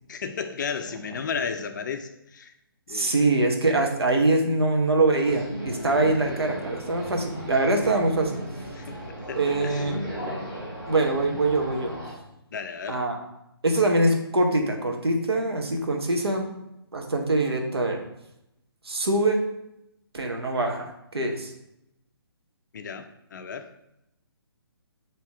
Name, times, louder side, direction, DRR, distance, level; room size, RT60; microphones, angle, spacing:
voice 1, 0.1-2.5 2.9-3.1 8.8-9.0 9.3-9.8 12.5-13.0 22.7-23.7, left 6 dB, 50° left, 8 dB, 0.4 m, -33 dB
voice 2, 2.9-8.4 9.3-10.0 10.9-12.0 12.9-13.2 13.6-16.5 16.9-18.0 18.8-19.5 20.1-21.5, right 2 dB, 80° right, 2 dB, 0.9 m, -23 dB
sound 1, 5.2-12.1, equal, ahead, 1.3 m, -36 dB
5.4 x 2.8 x 3.5 m, 0.85 s
figure-of-eight pair, 140°, 13 cm